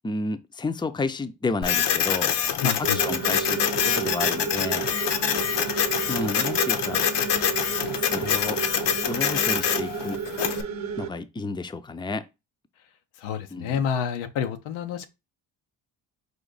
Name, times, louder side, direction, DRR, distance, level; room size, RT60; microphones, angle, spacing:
voice 1, 0.0-4.9 6.1-7.0 8.0-8.6 9.0-10.2 11.0-12.3 13.5-13.8, left 3 dB, 10° left, 0.5 m, -31 dB
Printer, 1.6-10.6, left 8 dB, 60° left, 0.9 m, -25 dB
voice 2, 2.6-3.0 13.2-15.1, left 7 dB, 85° left, 0.8 m, -28 dB
sound 1, 2.8-11.1, right 7 dB, 35° right, 0.8 m, -32 dB
5.0 x 2.6 x 4.0 m
supercardioid pair, 60°, 47 cm